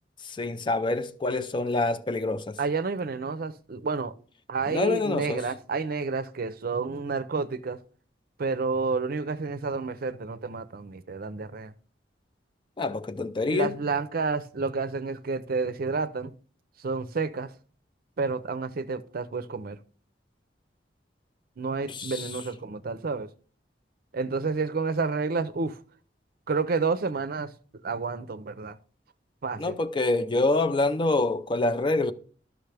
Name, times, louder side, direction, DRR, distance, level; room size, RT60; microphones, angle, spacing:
voice 1, 0.2-2.6 4.7-5.4 12.8-13.8 21.9-22.3 29.6-32.1, left 2 dB, 30° left, 0.4 m, -26 dB
voice 2, 2.6-4.1 4.5-7.8 8.4-11.7 13.5-16.3 16.8-17.5 18.2-19.8 21.6-23.3 24.1-25.8 26.5-27.5 27.8-28.8 29.4-29.7, right 4 dB, 55° right, 0.5 m, -30 dB
11.5 x 6.2 x 3.3 m
head